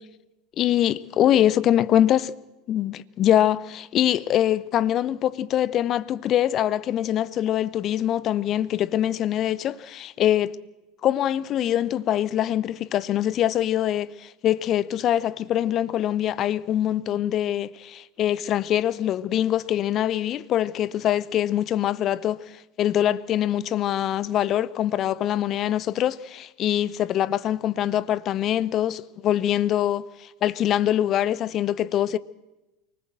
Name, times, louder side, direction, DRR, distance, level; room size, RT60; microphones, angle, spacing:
voice 1, 0.6-2.4 2.7-10.5 11.0-22.4 22.8-32.2, left 11 dB, 40° left, 0.8 m, -23 dB
24.5 x 19.0 x 7.7 m
figure-of-eight pair, 80°, 0 cm